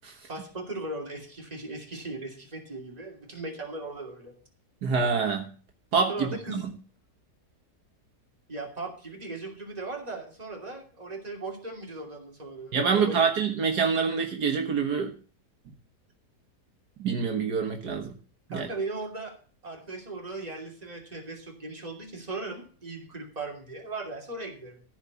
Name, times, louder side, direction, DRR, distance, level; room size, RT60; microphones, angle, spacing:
voice 1, 0.3-4.4 6.1-6.6 8.5-13.2 18.5-19.3 19.6-24.8, right 2 dB, 20° right, 0 dB, 3.0 m, -38 dB
voice 2, 4.8-5.5 5.9-6.6 12.7-15.1 17.0-18.2 18.5-18.7, right 5 dB, 70° right, 3 dB, 1.9 m, -26 dB
14.5 x 4.9 x 8.2 m, 0.39 s
omnidirectional pair, 1.8 m